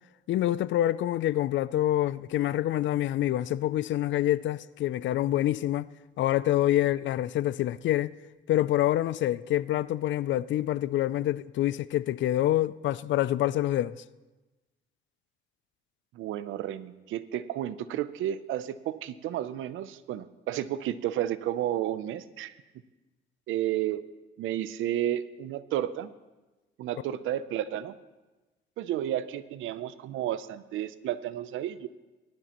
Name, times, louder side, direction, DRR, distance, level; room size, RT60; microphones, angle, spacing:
voice 1, 0.3-5.9 6.2-8.1 8.5-14.0, left 13 dB, 70° left, 0.4 m, -26 dB
voice 2, 16.1-22.6 23.5-24.0 24.4-26.1 26.8-28.0 28.8-31.9, right 12 dB, 85° right, 0.6 m, -32 dB
18.5 x 12.5 x 3.0 m
cardioid pair, 90°, 20 cm